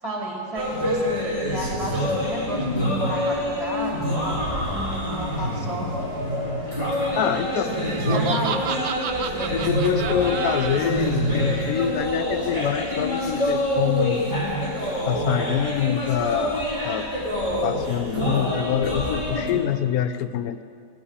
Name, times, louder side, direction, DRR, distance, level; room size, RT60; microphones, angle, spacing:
voice 1, 0.0-5.9 7.5-8.9, right 1 dB, 20° right, -2 dB, 2.5 m, -32 dB
sound 1, 0.5-19.5, equal, 30° left, 2.6 m, -26 dB
voice 2, 7.2-7.7 9.5-14.2 15.0-17.1 17.6-20.6, left 10 dB, 75° left, 11 dB, 1.0 m, -26 dB
Laughter, 7.9-10.9, right 9 dB, 65° right, 0.7 m, -31 dB
15.0 x 5.4 x 9.7 m, 2.3 s
omnidirectional pair, 1.6 m